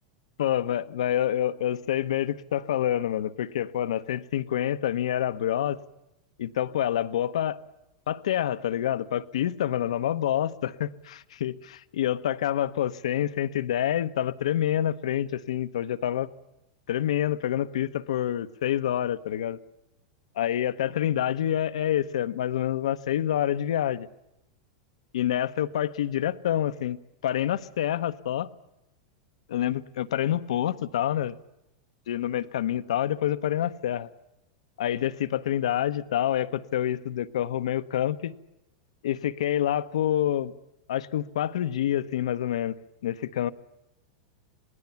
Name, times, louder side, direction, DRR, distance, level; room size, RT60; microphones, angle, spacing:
voice 1, 0.4-5.8 6.4-7.6 8.1-16.3 16.9-19.6 20.4-24.1 25.1-27.0 27.2-28.5 29.5-31.4 32.1-34.1 34.8-38.3 39.0-40.5 40.9-42.8 43.0-43.5, left 11 dB, 85° left, 13 dB, 0.9 m, -27 dB
27.0 x 19.0 x 7.1 m, 0.89 s
supercardioid pair, 130°, 3 cm